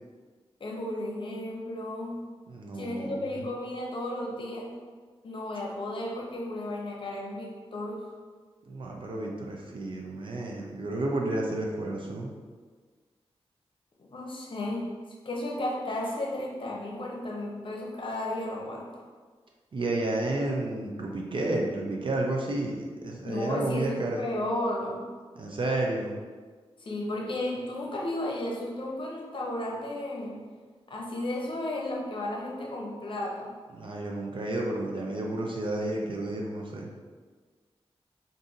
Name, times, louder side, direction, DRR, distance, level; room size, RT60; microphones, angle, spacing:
voice 1, 0.6-2.2 2.7-4.7 5.2-8.1 14.1-14.9 15.2-19.0 23.2-25.0 26.8-30.4 30.9-33.5, left 1 dB, 50° left, -2 dB, 0.7 m, -33 dB
voice 2, 2.5-3.4 8.7-12.3 19.7-24.2 25.4-26.2 33.7-36.9, right 2 dB, 50° right, -1 dB, 0.5 m, -31 dB
2.6 x 2.6 x 3.8 m, 1.5 s
cardioid pair, 75°, 11 cm